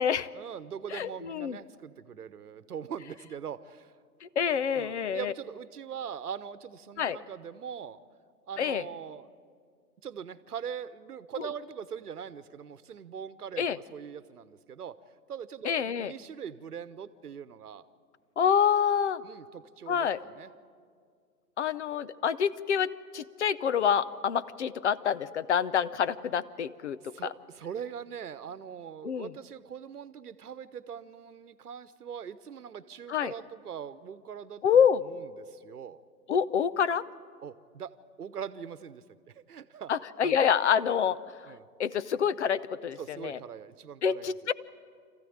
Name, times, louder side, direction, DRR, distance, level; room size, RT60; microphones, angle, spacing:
voice 1, 0.3-3.9 4.8-8.0 8.5-9.3 10.0-15.0 15.3-17.8 19.2-20.5 27.1-34.6 35.1-36.0 37.4-39.0 39.5-39.9 40.2-40.4 41.5-41.7 43.0-44.3, right 8 dB, 70° right, 15 dB, 1.1 m, -41 dB
voice 2, 0.9-1.6 4.2-5.3 7.0-7.2 8.6-8.8 11.4-11.5 13.6-13.8 15.6-16.1 18.4-19.2 19.9-20.2 21.6-27.1 29.0-29.3 33.1-33.3 34.6-35.0 36.3-37.0 39.9-41.5 41.8-43.4 44.0-44.5, left 7 dB, 45° left, 16 dB, 0.7 m, -27 dB
25.5 x 15.0 x 8.8 m, 2.1 s
figure-of-eight pair, 140°, 48 cm